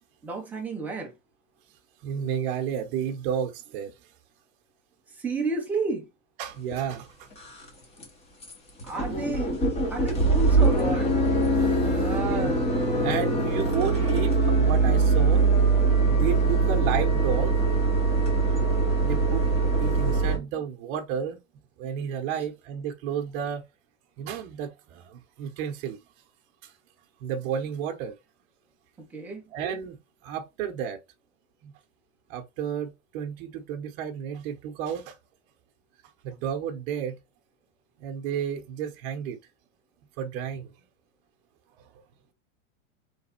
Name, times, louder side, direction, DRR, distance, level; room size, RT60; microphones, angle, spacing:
voice 1, 0.2-1.1 5.1-6.1 8.8-9.5 9.9-11.1 11.8-12.6 29.1-29.5, right 3 dB, 5° right, 0.4 m, -31 dB
voice 2, 2.0-3.9 6.4-7.3 11.6-12.5 12.9-15.4 16.1-17.7 18.8-21.4 21.8-23.6 24.2-26.0 26.6-26.7 27.2-28.1 29.5-30.0 30.2-31.0 31.6-31.7 32.3-35.2 36.2-37.1 38.0-39.4 40.2-40.7 41.8-41.9, right 8 dB, 45° right, 0.8 m, -32 dB
sound 1, 6.7-6.8 7.3-7.7 8.0-8.1 8.4-8.5 8.8-20.4, right 3 dB, 15° left, 0.8 m, -22 dB
3.5 x 3.3 x 4.2 m
supercardioid pair, 160°, 40 cm